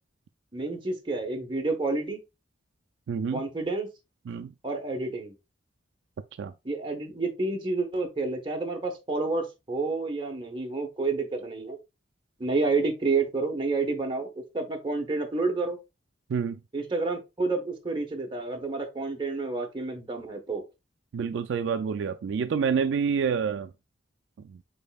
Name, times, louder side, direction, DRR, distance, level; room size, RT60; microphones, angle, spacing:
voice 1, 0.5-2.2 3.3-3.9 4.6-5.3 6.6-11.8 12.4-15.8 16.7-20.6, right 3 dB, 25° right, 1.1 m, -29 dB
voice 2, 3.1-3.4 4.3-4.5 6.4-6.5 16.3-16.6 21.1-23.7 24.4-24.6, right 6 dB, 70° right, 0.3 m, -28 dB
5.3 x 4.2 x 2.3 m
head